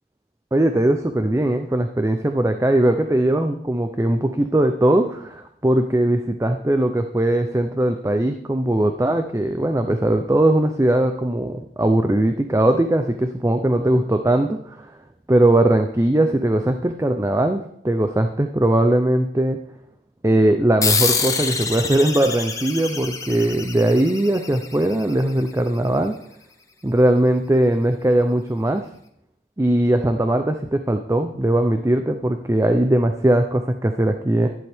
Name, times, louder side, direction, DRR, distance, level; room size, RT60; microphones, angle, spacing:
voice 1, 0.5-14.9 15.3-19.6 20.2-26.1 26.8-28.8 29.6-34.5, right 1 dB, 15° right, 7 dB, 0.5 m, -20 dB
sound 1, 20.8-25.8, left 5 dB, 20° left, 1.0 m, -26 dB
11.5 x 10.5 x 3.5 m, 0.72 s
head